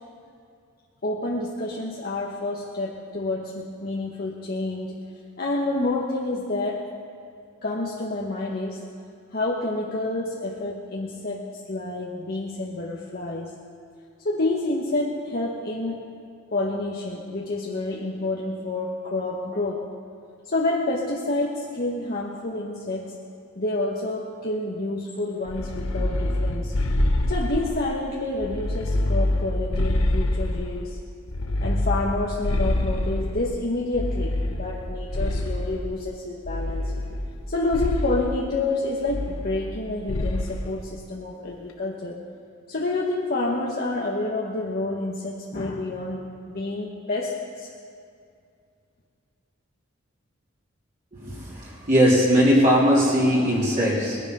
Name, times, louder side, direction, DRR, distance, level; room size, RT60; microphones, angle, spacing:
voice 1, 1.0-5.0 5.4-6.9 7.6-8.9 9.3-13.5 14.2-16.0 16.5-19.9 20.5-23.2 23.5-26.7 27.3-31.0 31.6-36.8 37.5-42.2 42.7-47.7, left 2 dB, 45° left, -3 dB, 1.2 m, -28 dB
sound 1, 25.5-27.9 28.4-30.8 31.3-33.5 33.9-35.8 36.5-37.4 37.7-38.2 39.1-39.8 40.1-40.5, left 1 dB, 85° left, 1.2 m, -26 dB
voice 2, 51.1-54.2, equal, 40° right, -6 dB, 3.3 m, -20 dB
20.0 x 11.0 x 5.5 m, 2.3 s
head